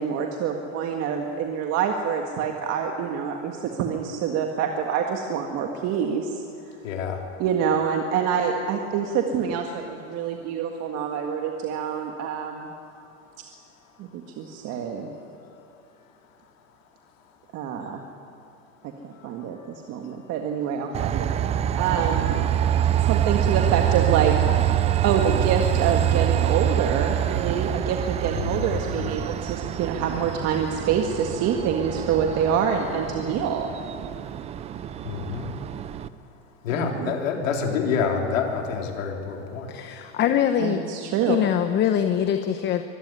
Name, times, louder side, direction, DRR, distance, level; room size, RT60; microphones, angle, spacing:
voice 1, 0.0-6.4 7.4-12.7 14.0-15.1 17.5-18.0 18.8-19.6 19.9-21.3 21.8-22.4 23.1-24.4 25.0-33.7 36.7-37.1 40.6-41.4, right 7 dB, 40° right, 3 dB, 1.8 m, -26 dB
voice 2, 6.8-7.2 12.9-13.4 19.4-20.0 28.3-29.1 35.0-35.5 36.6-39.7, left 6 dB, 80° left, 1 dB, 3.8 m, -28 dB
Train, 20.9-36.1, right 11 dB, 20° right, 0.4 m, -25 dB
voice 3, 39.7-40.8 41.3-42.8, left 9 dB, 30° left, 8 dB, 0.9 m, -23 dB
24.0 x 13.5 x 9.7 m, 2.6 s
supercardioid pair, 135°, 38 cm